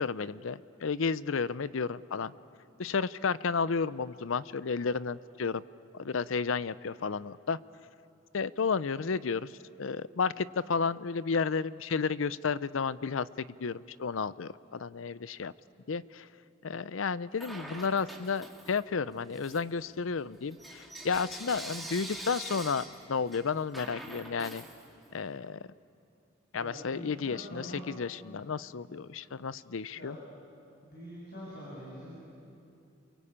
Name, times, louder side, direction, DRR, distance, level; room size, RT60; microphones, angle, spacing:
voice 1, 0.0-2.3 2.8-5.6 5.9-7.6 8.3-15.5 15.9-16.3 16.6-24.6 25.1-25.7 26.5-30.2, left 5 dB, 80° left, 17 dB, 0.6 m, -32 dB
Bell / Coin (dropping), 17.4-18.9 19.3-25.3, right 1 dB, ahead, 2.2 m, -45 dB
voice 2, 26.5-27.8 29.9-30.2 30.8-32.2, equal, 50° left, -6 dB, 7.4 m, -44 dB
29.5 x 23.0 x 8.7 m, 2.6 s
head